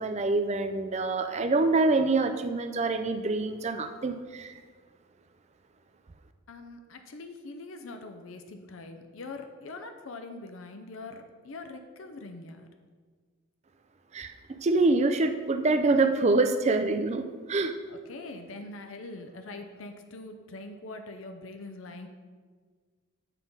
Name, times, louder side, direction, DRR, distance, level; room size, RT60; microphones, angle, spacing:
voice 1, 0.0-4.6 14.1-17.7, right 3 dB, 30° right, 8 dB, 0.4 m, -26 dB
voice 2, 6.5-12.7 17.9-22.1, left 2 dB, 70° left, 6 dB, 0.6 m, -43 dB
8.2 x 3.8 x 5.4 m, 1.5 s
head